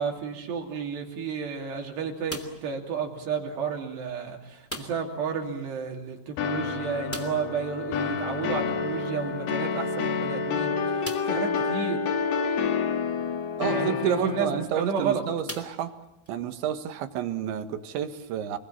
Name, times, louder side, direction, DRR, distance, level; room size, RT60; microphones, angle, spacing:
voice 1, 0.0-12.1 13.0-13.1 13.7-15.2, right 6 dB, 70° right, 1 dB, 4.9 m, -32 dB
sound 1, 2.2-2.8 4.6-5.2 5.5-5.6 5.9-6.0 7.1-7.6 9.4-9.5 10.1-10.2 11.0-11.5 12.2-12.3 14.3-14.6 15.4-16.3, equal, 5° left, 1.6 m, -39 dB
sound 2, 6.4-14.6, left 5 dB, 65° left, 3.6 m, -28 dB
voice 2, 13.6-15.9 16.3-18.6, right 10 dB, 85° right, 8 dB, 3.8 m, -30 dB
29.5 x 21.0 x 8.7 m, 0.86 s
omnidirectional pair, 5.2 m